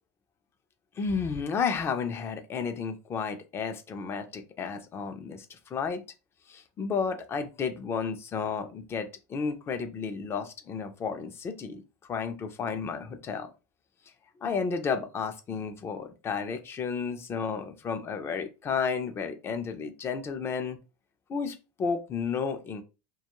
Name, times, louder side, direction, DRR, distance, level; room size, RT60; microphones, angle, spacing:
voice 1, 1.0-6.0 6.5-11.8 12.1-13.5 14.4-20.8 21.3-22.8, left 5 dB, 25° left, 0.5 m, -32 dB
2.3 x 2.2 x 2.9 m
supercardioid pair, 125°, 9 cm